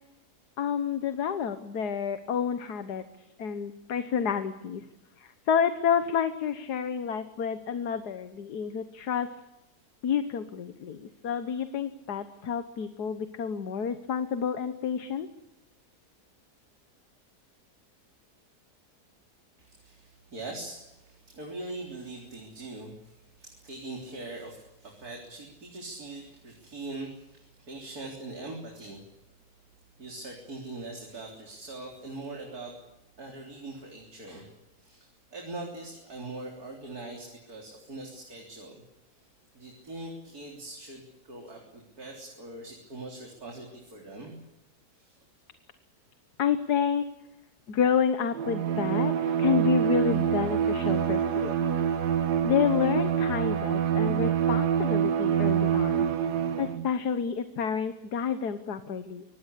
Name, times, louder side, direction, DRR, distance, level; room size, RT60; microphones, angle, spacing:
voice 1, 0.6-3.0 3.4-4.8 5.2-9.3 10.0-15.3 46.4-47.0 47.7-51.6 52.4-56.0 56.6-59.2, left 7 dB, 75° left, 10 dB, 1.7 m, -29 dB
voice 2, 19.6-29.0 30.0-32.7 33.2-34.5 34.8-38.8 39.5-44.4 44.9-45.2, right 2 dB, 65° right, 0 dB, 4.3 m, -42 dB
Bowed string instrument, 48.3-56.9, right 8 dB, 85° right, 1.8 m, -26 dB
24.5 x 19.5 x 8.4 m, 0.95 s
omnidirectional pair, 1.7 m